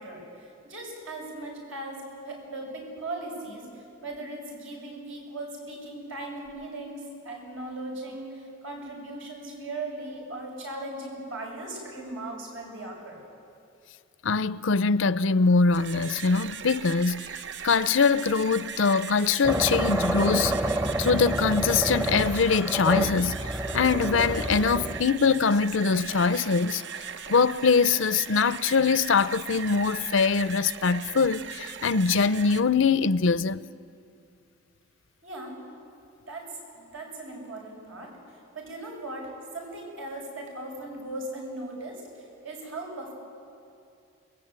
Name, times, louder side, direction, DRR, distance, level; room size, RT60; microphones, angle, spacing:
voice 1, 0.0-13.2 35.2-35.6 36.3-36.5 36.7-38.1 38.5-43.1, right 2 dB, 80° right, 7.9 m, -38 dB
voice 2, 14.2-17.3 17.6-20.6 21.0-23.5 23.7-26.8 27.3-33.7, left 5 dB, 70° left, 0.6 m, -23 dB
sound 1, 15.6-32.6, right 6 dB, 60° right, 0.9 m, -39 dB
sound 2, 19.4-25.1, right 1 dB, 15° right, 0.8 m, -28 dB
28.5 x 21.5 x 8.9 m
head